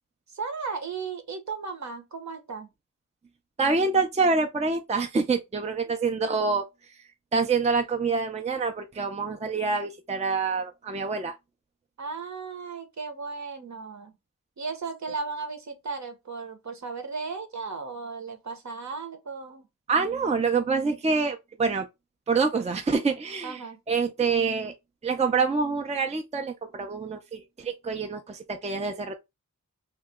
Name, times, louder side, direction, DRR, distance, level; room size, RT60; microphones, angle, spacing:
voice 1, 0.3-2.7 5.8-6.0 12.0-14.1 14.6-19.7 23.4-23.8, right 4 dB, 60° right, 0.9 m, -35 dB
voice 2, 3.6-6.6 7.3-11.4 19.9-21.9 22.3-23.6 23.9-24.7 25.0-29.1, right 4 dB, 20° right, 0.5 m, -26 dB
2.9 x 2.2 x 3.4 m
cardioid pair, 60°, 32 cm